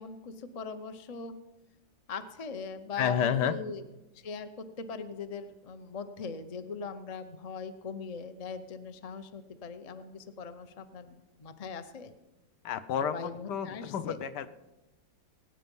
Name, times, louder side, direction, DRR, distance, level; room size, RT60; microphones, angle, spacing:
voice 1, 0.0-1.3 2.1-3.8 4.1-12.1 13.1-14.2, left 5 dB, 55° left, 9 dB, 0.4 m, -41 dB
voice 2, 3.0-3.5 12.6-14.5, left 8 dB, 70° left, 11 dB, 1.3 m, -30 dB
19.5 x 9.1 x 5.4 m, 1.1 s
omnidirectional pair, 2.0 m